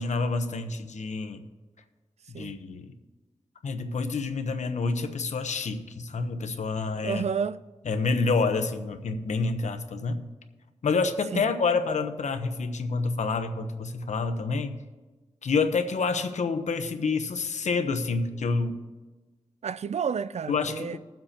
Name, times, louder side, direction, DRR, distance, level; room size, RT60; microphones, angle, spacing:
voice 1, 0.0-1.4 2.3-2.9 3.6-7.2 7.9-10.2 10.8-14.8 15.4-18.7 20.5-21.0, left 4 dB, 80° left, 1.0 m, -28 dB
voice 2, 7.0-7.6 11.3-11.4 19.6-21.0, right 6 dB, 65° right, 0.4 m, -30 dB
21.0 x 7.5 x 2.9 m
cardioid pair, 45°, 12 cm